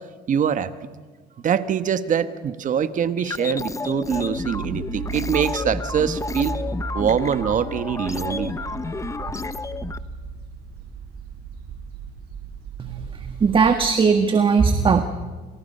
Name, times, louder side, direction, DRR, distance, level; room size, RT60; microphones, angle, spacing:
voice 1, 0.3-0.7 1.4-6.6 6.9-8.5 8.8-9.0, right 8 dB, 50° right, 11 dB, 1.5 m, -24 dB
sound 1, 3.2-10.0, left 3 dB, 20° left, 1.0 m, -31 dB
sound 2, 4.1-13.9, right 4 dB, 70° right, 4.9 m, -35 dB
voice 2, 12.8-15.0, right 5 dB, 30° right, 7 dB, 1.6 m, -19 dB
29.0 x 28.0 x 5.6 m, 1.4 s
cardioid pair, 110°, 17 cm